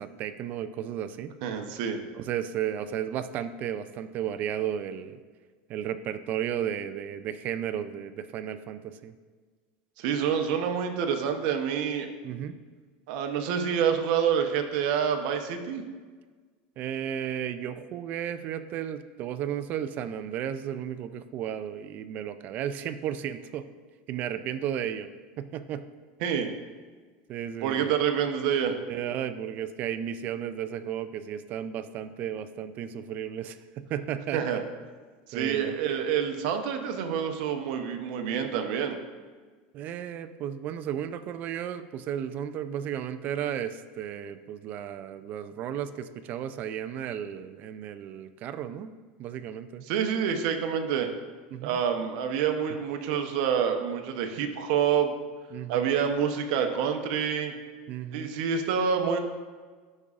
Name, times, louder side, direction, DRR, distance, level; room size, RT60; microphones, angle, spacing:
voice 1, 0.0-1.3 2.2-5.2 5.7-9.1 12.2-12.6 16.8-23.7 24.1-25.1 25.4-25.9 27.3-27.9 28.9-34.6 35.3-35.8 39.7-48.9 49.2-49.9 51.5-51.8 55.5-55.9 57.9-58.3, right 9 dB, 35° right, 11 dB, 0.4 m, -34 dB
voice 2, 1.4-2.0 10.0-12.1 13.1-15.8 26.2-26.5 27.6-28.8 34.3-34.6 35.3-39.0 49.9-51.1 51.6-55.1 55.7-57.5 58.1-59.2, right 7 dB, 60° right, 5 dB, 0.8 m, -27 dB
13.0 x 5.4 x 2.5 m, 1.5 s
supercardioid pair, 150°, 5 cm